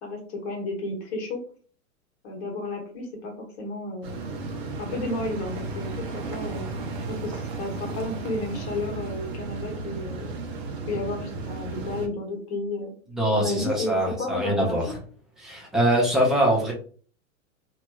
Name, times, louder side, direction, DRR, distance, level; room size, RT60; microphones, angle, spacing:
voice 1, 0.0-1.4 2.2-4.4 4.8-6.7 7.1-10.4 10.9-12.9 13.3-14.8, left 2 dB, 50° left, 1 dB, 1.4 m, -32 dB
sound 1, 4.0-12.1, right 3 dB, 40° right, 0.8 m, -34 dB
voice 2, 13.1-14.8 15.4-16.7, right 1 dB, ahead, -3 dB, 0.5 m, -23 dB
2.9 x 2.9 x 2.3 m, 0.43 s
hypercardioid pair, 140°, 41 cm